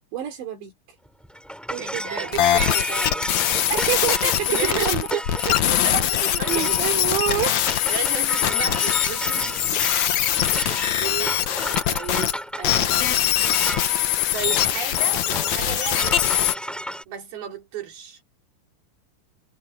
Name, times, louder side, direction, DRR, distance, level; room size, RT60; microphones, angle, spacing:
voice 1, 0.1-0.7 1.7-2.4 3.7-5.0 5.9-7.7 10.5-11.5, right 12 dB, 75° right, 5.6 m, -28 dB
sound 1, 1.1-17.0, equal, ahead, 7.3 m, -33 dB
voice 2, 1.8-3.3 4.5-6.1 6.4-6.8 7.9-9.8 10.5-10.8 11.9-13.4 14.3-16.5 17.1-18.2, right 8 dB, 55° right, 6.3 m, -33 dB
sound 2, 2.3-12.3 12.6-16.5, left 11 dB, 85° left, 1.6 m, -22 dB
omnidirectional pair, 5.2 m